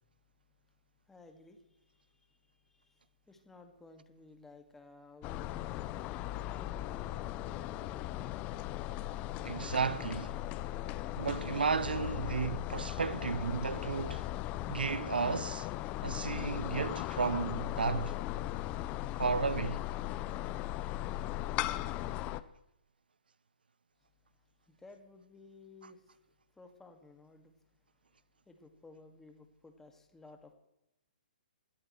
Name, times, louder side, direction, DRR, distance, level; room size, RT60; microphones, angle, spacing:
voice 1, 1.1-5.9 6.6-8.1 24.3-26.2 26.5-27.6 28.4-30.5, left 3 dB, 5° left, 2.0 m, -57 dB
sound 1, 5.2-22.4, left 14 dB, 25° left, 0.6 m, -38 dB
voice 2, 9.4-10.4 11.2-14.2 14.7-15.7 16.0-18.1 19.2-19.8, right 5 dB, 75° right, 0.7 m, -33 dB
27.5 x 13.5 x 3.2 m
figure-of-eight pair, 130°, 5 cm